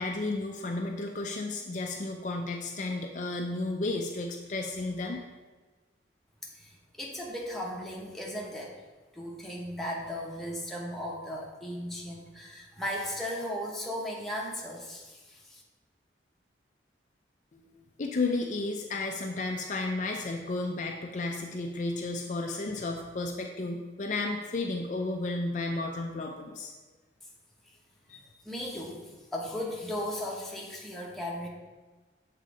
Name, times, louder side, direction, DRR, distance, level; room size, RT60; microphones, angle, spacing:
voice 1, 0.0-5.2 17.5-17.6 18.0-26.7 28.1-28.2, left 2 dB, 40° left, 2 dB, 0.5 m, -33 dB
voice 2, 7.0-8.7 9.1-15.6 28.4-31.5, equal, ahead, -3 dB, 1.0 m, -36 dB
7.4 x 3.7 x 4.9 m, 1.3 s
head